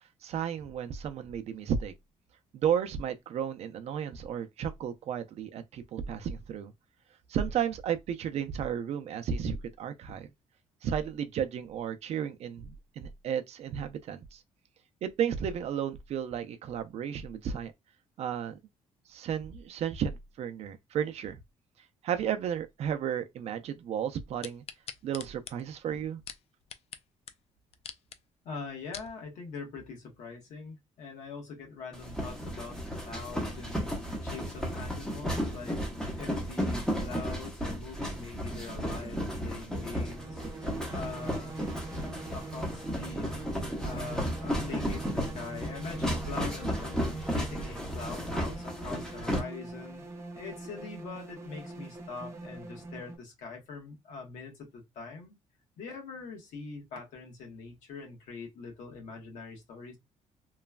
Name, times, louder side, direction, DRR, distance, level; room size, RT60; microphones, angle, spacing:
voice 1, 0.2-1.9 2.5-6.7 7.3-10.3 10.8-14.4 15.0-17.7 18.2-18.6 19.1-21.4 22.0-24.6 25.0-26.2, right 8 dB, 60° right, 0.5 m, -33 dB
Robot knob, 24.4-27.0 27.3-27.4 27.7-28.2 28.7-29.1 29.7-29.8, left 8 dB, 55° left, 0.4 m, -44 dB
voice 2, 28.4-33.9 34.2-35.8 36.2-40.5 40.9-41.7 42.3-50.0 50.3-55.3 55.8-60.0, left 4 dB, 85° left, 1.2 m, -43 dB
sound 1, 31.9-49.4, equal, 5° left, 0.9 m, -34 dB
sound 2, 38.4-53.2, right 3 dB, 20° right, 0.7 m, -44 dB
3.1 x 2.2 x 2.3 m
cardioid pair, 130°, 12 cm